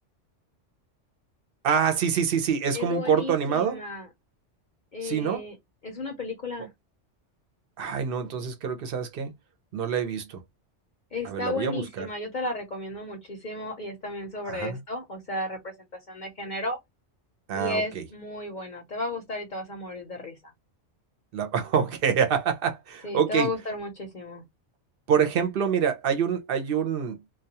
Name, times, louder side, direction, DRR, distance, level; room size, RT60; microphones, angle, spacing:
voice 1, 1.6-3.8 5.0-5.4 7.8-9.3 9.7-10.4 11.2-12.1 14.5-14.8 17.5-18.0 21.3-23.5 25.1-27.2, right 7 dB, 60° right, 0.8 m, -26 dB
voice 2, 2.7-4.1 4.9-5.6 5.8-6.7 11.1-15.7 16.1-16.8 17.5-20.4 23.0-24.4, left 2 dB, 50° left, 0.7 m, -33 dB
2.3 x 2.2 x 2.7 m
omnidirectional pair, 1.2 m